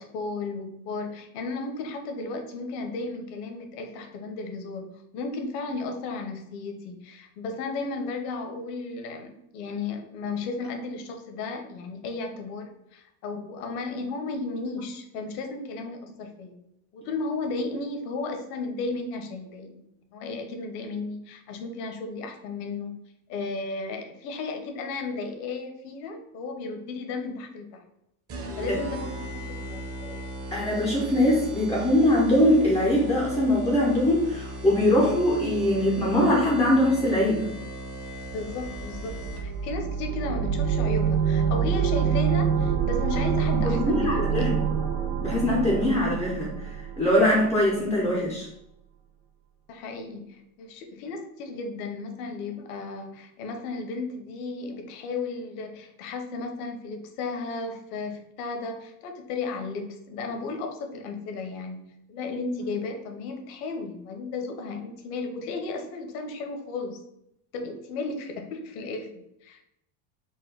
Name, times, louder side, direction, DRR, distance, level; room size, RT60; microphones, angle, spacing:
voice 1, 0.0-16.6 16.9-19.8 20.1-23.0 23.3-27.8 28.6-30.2 38.3-44.7 49.7-67.0 67.5-69.6, left 3 dB, 75° left, 5 dB, 1.0 m, -34 dB
sound 1, 28.3-39.7, right 1 dB, 30° right, 0.8 m, -37 dB
voice 2, 30.5-37.5 43.6-44.6 45.2-46.7 47.0-48.5, left 1 dB, 5° left, -5 dB, 0.4 m, -22 dB
sound 2, 38.4-47.3, right 7 dB, 70° right, 1.5 m, -26 dB
4.6 x 2.2 x 4.6 m, 0.81 s
cardioid pair, 150°, 46 cm